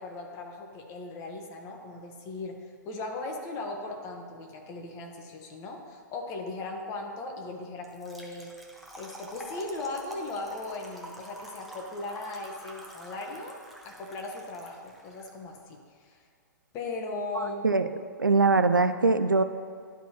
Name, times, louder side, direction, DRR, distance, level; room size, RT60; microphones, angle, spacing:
voice 1, 0.0-2.6 2.8-8.5 9.0-13.6 13.8-16.2 16.7-17.7, left 2 dB, 25° left, 2 dB, 1.0 m, -38 dB
Trickle dribble / Fill (with liquid), 7.8-15.3, equal, ahead, 0.8 m, -46 dB
voice 2, 17.4-17.9 18.2-19.4, right 3 dB, 85° right, 10 dB, 0.4 m, -22 dB
12.0 x 4.2 x 2.9 m, 2.1 s
figure-of-eight pair, 115°, 10 cm